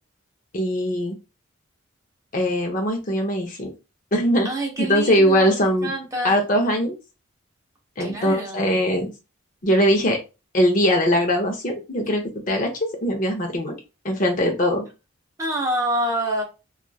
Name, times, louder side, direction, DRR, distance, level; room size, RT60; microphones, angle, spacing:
voice 1, 0.5-1.2 2.3-3.7 4.1-4.5 4.8-5.9 6.2-7.0 8.0-9.1 9.6-10.2 10.5-12.7 13.0-13.8 14.0-14.8, equal, 40° left, 0.7 m, -21 dB
voice 2, 4.4-6.4 8.0-8.6 15.4-16.4, right 1 dB, 15° right, 0.8 m, -27 dB
2.9 x 2.4 x 2.3 m
head